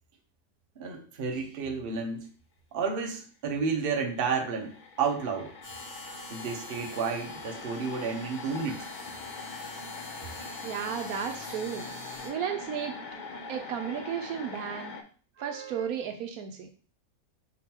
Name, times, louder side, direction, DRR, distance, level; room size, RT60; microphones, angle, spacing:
voice 1, 0.8-2.3 2.7-5.5 6.3-8.9 10.3-10.6 15.4-15.9, right 5 dB, 45° right, 3 dB, 0.9 m, -32 dB
sound 1, 3.7-3.8 4.0-15.0, left 4 dB, 70° left, 0.4 m, -42 dB
sound 2, 5.6-12.3, left 2 dB, 20° left, 2.0 m, -46 dB
voice 2, 10.6-11.9 12.2-13.0 13.5-14.9 15.4-16.7, right 8 dB, 75° right, 5 dB, 1.0 m, -34 dB
4.9 x 3.7 x 2.9 m, 0.41 s
omnidirectional pair, 1.6 m